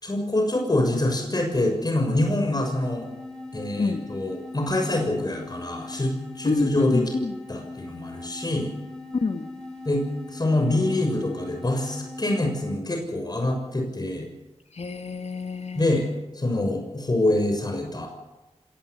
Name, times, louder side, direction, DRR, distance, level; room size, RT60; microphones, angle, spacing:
voice 1, 0.0-3.1 3.5-7.1 7.5-8.7 9.8-14.3 15.7-16.1 16.3-18.1, left 1 dB, 35° left, 2 dB, 6.5 m, -25 dB
sound 1, 2.5-12.9, left 2 dB, 5° left, 6.6 m, -40 dB
voice 2, 6.5-7.3 9.1-9.5 14.8-15.9, left 3 dB, 65° left, 7 dB, 2.1 m, -26 dB
26.5 x 19.0 x 8.4 m, 1.0 s
wide cardioid pair, 75°, 12 cm